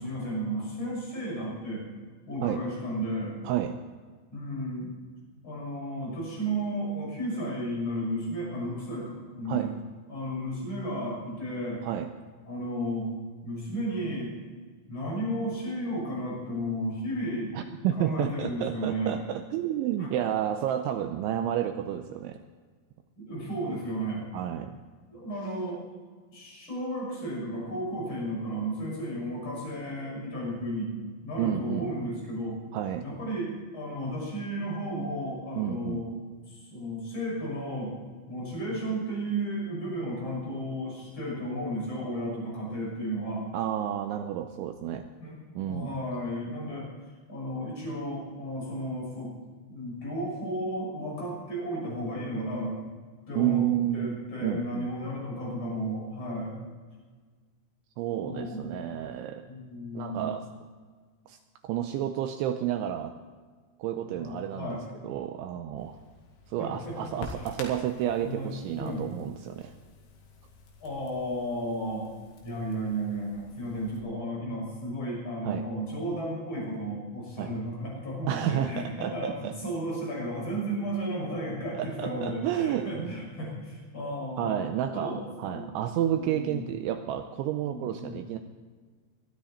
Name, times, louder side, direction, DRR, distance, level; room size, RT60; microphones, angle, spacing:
voice 1, 0.0-1.9 2.3-3.4 4.3-4.9 5.4-9.7 10.1-11.9 12.4-13.1 13.4-14.4 14.9-17.5 17.9-19.2 20.0-20.1 23.2-24.3 25.1-25.8 26.3-30.9 31.2-32.6 33.0-36.1 36.5-38.0 38.3-43.5 45.2-45.4 45.7-46.9 47.3-49.3 49.7-52.8 53.3-53.7 53.9-56.5 58.2-59.0 59.5-60.4 64.0-64.8 66.6-67.4 68.2-69.1 70.8-72.1 72.4-84.6 84.9-86.7 87.6-88.2, equal, 25° left, -4 dB, 6.7 m, -33 dB
voice 2, 3.4-3.8 9.5-9.8 11.8-12.1 17.5-22.4 24.3-24.8 31.4-31.9 32.7-33.1 35.6-36.0 43.5-45.1 45.6-46.0 53.3-54.9 58.0-59.5 59.9-60.4 61.3-61.4 61.6-63.1 63.8-64.8 65.0-66.0 66.5-69.7 75.4-75.7 77.4-77.5 78.3-79.6 81.8-83.2 84.4-88.4, right 11 dB, 80° right, 7 dB, 2.8 m, -30 dB
Crackle, 65.8-74.0, left 3 dB, 90° left, 4.9 m, -49 dB
22.0 x 12.5 x 4.3 m, 1.5 s
omnidirectional pair, 5.9 m